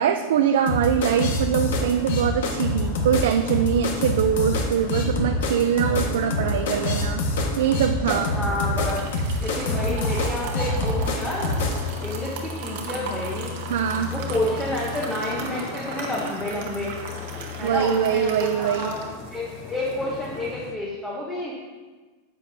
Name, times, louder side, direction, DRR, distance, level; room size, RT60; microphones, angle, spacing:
voice 1, 0.0-7.2 7.6-8.3 13.7-14.1 17.6-18.9, right 8 dB, 70° right, 6 dB, 0.4 m, -23 dB
sound 1, 0.7-11.8, left 2 dB, 70° left, 1.4 m, -25 dB
sound 2, 1.2-20.8, left 5 dB, 25° left, 0.5 m, -37 dB
sound 3, 7.7-20.6, right 5 dB, 50° right, 1.2 m, -38 dB
voice 2, 8.3-9.0 9.4-11.5 12.0-13.6 14.1-16.9 17.6-19.0 19.3-21.5, left 1 dB, 5° left, -5 dB, 0.9 m, -29 dB
10.0 x 8.3 x 2.7 m, 1.3 s
supercardioid pair, 180°, 0 cm